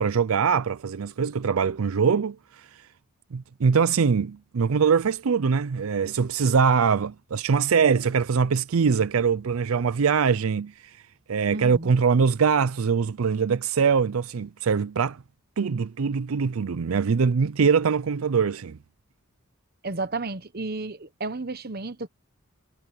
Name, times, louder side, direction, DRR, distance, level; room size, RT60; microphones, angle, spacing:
voice 1, 0.0-2.4 3.3-10.7 11.3-15.2 15.6-18.8, right 6 dB, 85° right, 0.5 m, -23 dB
voice 2, 11.5-11.9 19.8-22.1, right 3 dB, 45° right, 1.1 m, -32 dB
head